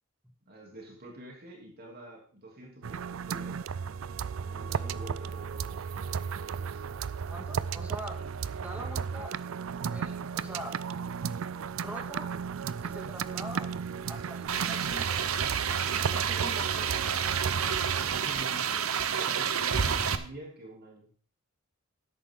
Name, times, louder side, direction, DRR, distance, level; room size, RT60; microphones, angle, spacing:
voice 1, 0.5-3.6 4.4-6.0 6.4-6.8 18.0-21.1, right 1 dB, 45° right, -1 dB, 3.1 m, -47 dB
sound 1, 2.8-18.2, right 6 dB, 65° right, 0.4 m, -35 dB
voice 2, 7.3-8.2 8.6-9.3 9.9-10.8 11.7-12.3 12.8-13.7 14.1-15.2 15.9-17.0, equal, 5° right, 1 dB, 2.4 m, -43 dB
sound 2, 14.5-20.2, right 7 dB, 85° right, 0.9 m, -29 dB
13.0 x 10.5 x 3.8 m, 0.43 s
head